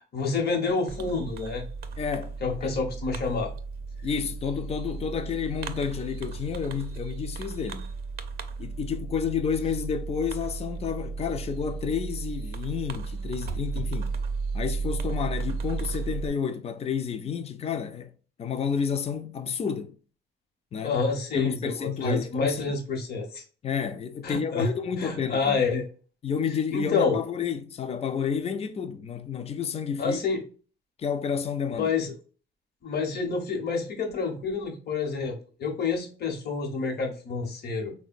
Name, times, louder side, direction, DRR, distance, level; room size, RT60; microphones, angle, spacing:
voice 1, 0.1-1.7 2.4-3.5 20.8-23.4 24.2-24.7 25.0-25.8 26.7-27.2 30.0-30.4 31.8-32.1 32.8-37.9, left 4 dB, 55° left, 0.9 m, -28 dB
Fireworks, 0.9-16.3, right 4 dB, 50° right, 0.6 m, -34 dB
voice 2, 2.0-2.7 4.0-7.9 8.6-14.2 14.5-18.1 18.4-19.9 20.7-21.0 21.3-22.7 23.6-25.6 26.2-30.2 31.0-31.9, left 7 dB, 30° left, 0.4 m, -30 dB
3.7 x 2.1 x 2.4 m
cardioid pair, 90°, 20 cm